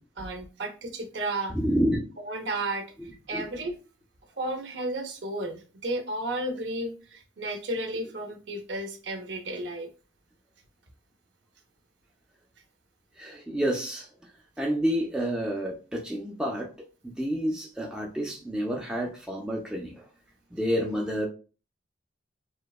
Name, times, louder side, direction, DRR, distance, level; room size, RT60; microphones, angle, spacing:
voice 1, 0.2-1.5 2.2-2.8 3.3-3.7 4.4-9.9, right 1 dB, 70° right, 4 dB, 0.6 m, -33 dB
voice 2, 1.5-2.0 3.3-3.5 13.2-14.1 14.6-16.7 17.0-19.9 20.5-21.3, equal, 5° right, -1 dB, 0.3 m, -29 dB
2.9 x 2.1 x 2.3 m, 0.35 s
head